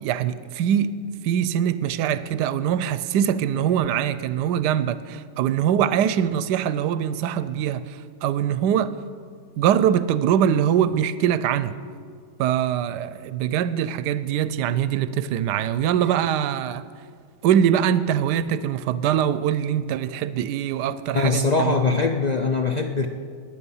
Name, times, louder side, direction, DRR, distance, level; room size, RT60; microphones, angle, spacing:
voice 1, 0.0-1.0 1.2-9.0 9.6-11.8 12.4-16.8 17.4-22.0, right 9 dB, 85° right, 1.2 m, -23 dB
voice 2, 21.1-23.1, left 4 dB, 75° left, 0.3 m, -22 dB
17.0 x 10.5 x 5.6 m
omnidirectional pair, 1.8 m